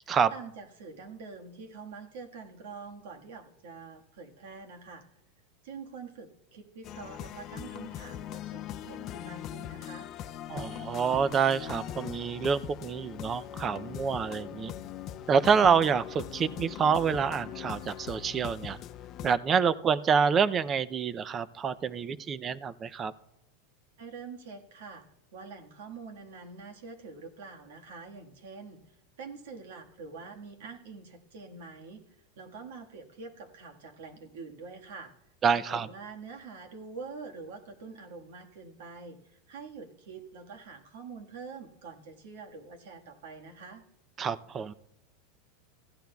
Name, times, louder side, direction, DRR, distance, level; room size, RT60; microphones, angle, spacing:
voice 1, 0.3-5.0 5.6-10.1 24.0-25.0 25.3-28.8 29.2-32.0 32.4-35.1 35.5-43.8, right 4 dB, 75° right, 3 dB, 1.6 m, -45 dB
sound 1, 6.8-19.4, left 11 dB, 40° left, 0.4 m, -41 dB
voice 2, 10.5-14.7 15.3-18.8 19.2-23.1 35.4-35.9 44.2-44.7, right 6 dB, 25° right, 16 dB, 0.5 m, -27 dB
15.5 x 11.5 x 2.3 m, 0.84 s
supercardioid pair, 130°, 0 cm